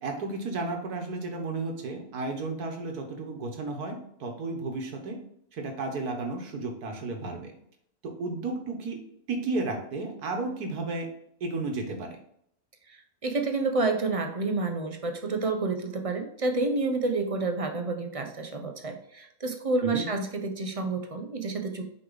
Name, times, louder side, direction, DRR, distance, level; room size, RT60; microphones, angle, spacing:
voice 1, 0.0-5.2 5.5-7.5 8.0-9.0 9.3-11.1 11.4-12.2 19.8-20.1, right 3 dB, 85° right, 3 dB, 1.8 m, -33 dB
voice 2, 12.9-21.9, right 3 dB, 35° right, 5 dB, 0.6 m, -29 dB
6.5 x 5.0 x 4.0 m, 0.70 s
omnidirectional pair, 1.6 m